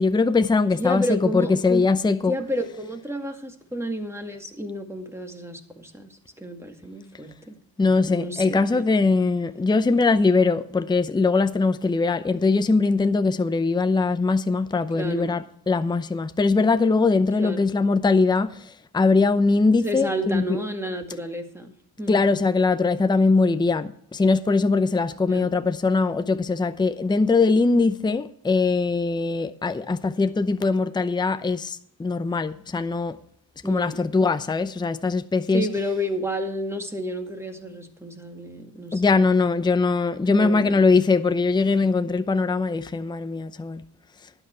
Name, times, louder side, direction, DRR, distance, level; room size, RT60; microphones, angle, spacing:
voice 1, 0.0-2.3 7.8-18.6 18.9-20.6 22.1-33.2 33.6-35.7 38.9-43.8, left 3 dB, 10° left, 0.6 m, -21 dB
voice 2, 0.8-1.9 2.3-7.6 8.1-8.9 14.9-15.4 17.4-17.6 19.8-21.7 22.0-22.2 25.2-25.5 33.6-34.0 35.5-39.0 40.2-40.8, equal, 5° right, 2.1 m, -31 dB
12.0 x 9.1 x 4.5 m
cardioid pair, 75°, 37 cm